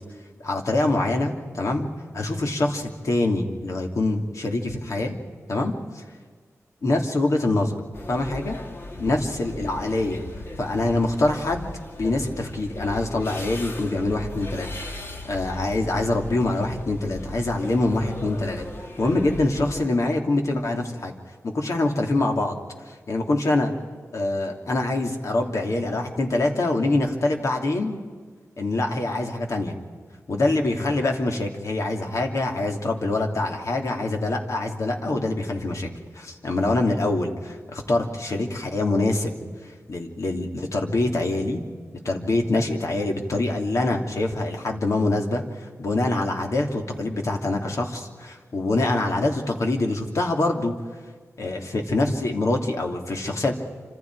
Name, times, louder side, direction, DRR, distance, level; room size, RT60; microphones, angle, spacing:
voice 1, 0.4-1.9 2.1-5.1 5.5-6.0 6.8-7.8 8.1-8.6 9.0-10.2 10.6-11.7 12.0-14.7 15.2-18.7 19.0-21.1 21.4-22.6 22.9-23.7 24.1-28.0 28.6-29.8 30.3-35.9 36.1-39.3 39.9-41.6 42.0-50.7 51.4-53.5, left 2 dB, 65° left, 2 dB, 2.9 m, -25 dB
sound 1, 7.9-19.8, left 2 dB, 45° left, 2.1 m, -37 dB
28.5 x 26.5 x 4.8 m, 1.5 s
wide cardioid pair, 120°, 6 cm